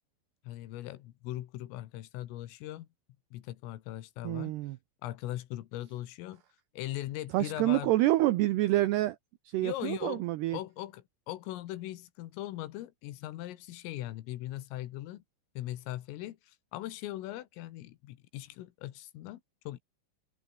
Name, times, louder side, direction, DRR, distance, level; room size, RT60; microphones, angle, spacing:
voice 1, 0.5-2.9 3.3-4.6 5.0-6.4 6.7-7.9 9.6-10.2 10.5-15.2 15.6-19.8, left 15 dB, 80° left, 4.0 m, -40 dB
voice 2, 4.2-4.8 7.3-9.2 9.5-10.6, right 16 dB, 85° right, 2.3 m, -27 dB
omnidirectional pair, 5.9 m